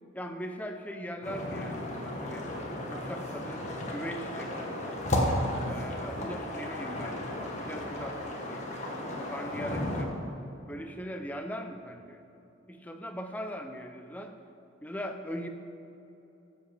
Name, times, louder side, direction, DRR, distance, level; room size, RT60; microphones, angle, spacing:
voice 1, 0.1-2.5 2.9-4.6 5.7-8.7 9.3-10.1 10.7-12.2 12.7-14.4 14.8-15.5, equal, 10° left, 5 dB, 0.6 m, -40 dB
sound 1, 1.2-10.0, left 1 dB, 35° left, 1.5 m, -34 dB
15.0 x 7.8 x 5.1 m, 2.9 s
head